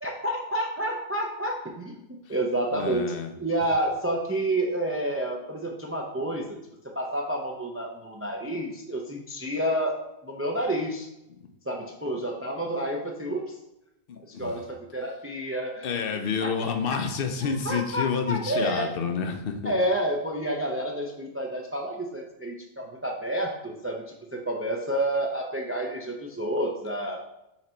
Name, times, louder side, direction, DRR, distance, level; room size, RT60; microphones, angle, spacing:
voice 1, 0.0-2.0 2.3-6.6 6.9-11.1 11.6-13.6 14.3-15.9 16.4-17.0 17.6-18.9 19.6-27.2, right 1 dB, 15° right, 0 dB, 0.5 m, -29 dB
voice 2, 2.7-3.3 14.1-14.5 15.8-19.7, left 6 dB, 55° left, 6 dB, 0.8 m, -29 dB
5.9 x 3.9 x 4.4 m, 0.89 s
omnidirectional pair, 1.2 m